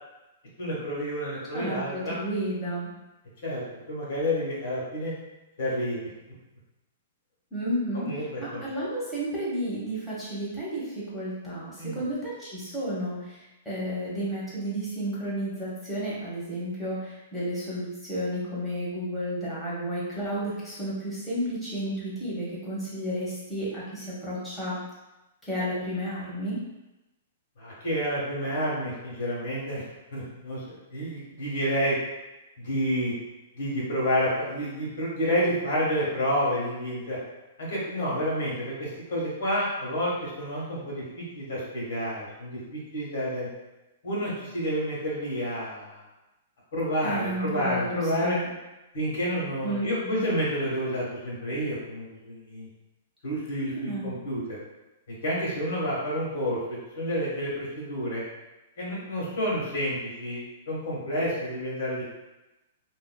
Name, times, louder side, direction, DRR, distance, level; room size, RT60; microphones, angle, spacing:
voice 1, 0.6-2.2 3.4-3.6 3.9-5.1 5.6-6.1 7.9-8.6 11.8-12.0 27.6-29.8 30.1-32.0 32.6-33.1 33.6-37.2 37.6-43.5 44.0-46.0 46.7-48.4 48.9-52.7 53.2-54.6 55.2-56.6 56.9-58.2 58.8-62.1, equal, 65° left, -6 dB, 1.4 m, -29 dB
voice 2, 1.5-2.9 7.5-24.8 25.4-26.6 47.0-48.5 49.6-50.2 53.7-54.1, equal, ahead, -10 dB, 1.1 m, -32 dB
2.8 x 2.3 x 2.3 m, 1.0 s
hypercardioid pair, 130°, 0 cm